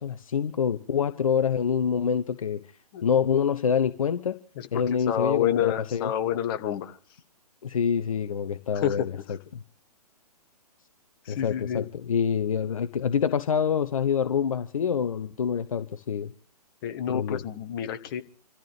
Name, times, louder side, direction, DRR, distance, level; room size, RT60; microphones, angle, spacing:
voice 1, 0.0-2.6 3.0-4.4 4.7-6.1 7.6-9.2 9.5-9.6 11.3-16.3 17.1-17.4, left 7 dB, 55° left, 10 dB, 0.9 m, -26 dB
voice 2, 5.1-7.0 8.7-9.1 11.2-11.9 16.8-18.2, left 10 dB, 35° left, 8 dB, 1.4 m, -28 dB
28.5 x 14.0 x 3.3 m, 0.42 s
figure-of-eight pair, 125°, 21 cm